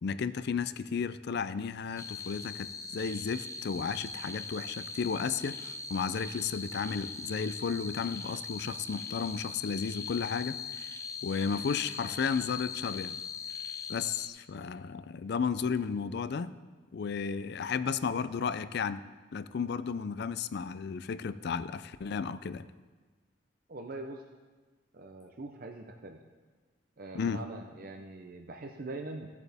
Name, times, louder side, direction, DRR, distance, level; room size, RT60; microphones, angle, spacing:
voice 1, 0.0-10.6 11.2-13.2 13.9-16.5 16.9-19.0 19.3-22.7 27.1-27.4, left 6 dB, 60° left, 14 dB, 0.4 m, -33 dB
sound 1, 2.0-14.3, left 4 dB, 15° left, 0.6 m, -41 dB
voice 2, 23.7-24.2 24.9-26.2 27.0-29.3, right 2 dB, 50° right, 3 dB, 0.7 m, -42 dB
15.5 x 8.2 x 3.5 m, 1.4 s
head